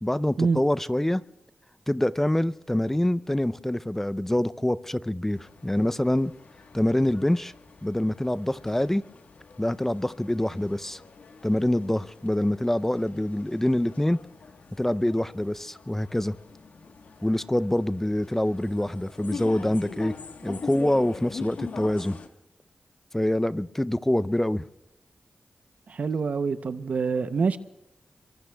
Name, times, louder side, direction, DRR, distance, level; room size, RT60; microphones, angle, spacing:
voice 1, 0.0-1.2 1.9-6.3 6.7-7.5 7.8-9.0 9.6-11.0 11.4-14.2 14.8-16.4 17.2-20.1 20.4-22.2 23.1-24.7, left 1 dB, 10° left, 0.5 m, -25 dB
sound 1, 5.3-22.3, left 5 dB, 80° left, 1.3 m, -43 dB
voice 2, 25.9-27.6, right 5 dB, 70° right, 0.7 m, -26 dB
24.5 x 23.5 x 2.3 m
cardioid pair, 50°, 3 cm